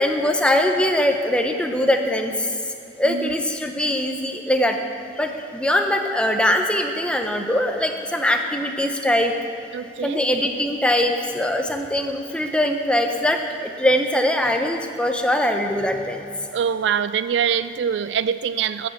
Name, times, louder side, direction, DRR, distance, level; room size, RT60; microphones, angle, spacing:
voice 1, 0.0-2.5 3.0-4.8 5.2-9.3 10.0-16.3, left 1 dB, 5° left, 4 dB, 0.6 m, -22 dB
voice 2, 3.0-3.4 9.7-10.2 16.5-18.9, right 7 dB, 65° right, 14 dB, 0.3 m, -24 dB
12.0 x 5.1 x 7.8 m, 2.7 s
head